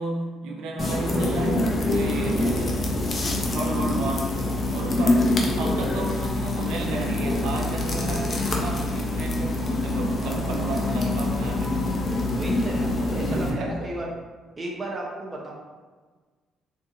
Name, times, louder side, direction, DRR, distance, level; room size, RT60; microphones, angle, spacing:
voice 1, 0.0-2.9 3.5-5.2 5.6-11.9 13.2-13.9, right 2 dB, 80° right, 1 dB, 0.6 m, -33 dB
sound 1, 0.8-13.5, left 2 dB, 40° left, 0.6 m, -25 dB
voice 2, 12.3-14.1 14.6-15.5, right 1 dB, 25° right, -2 dB, 0.9 m, -34 dB
3.8 x 2.7 x 2.6 m, 1.4 s
supercardioid pair, 75°, 0 cm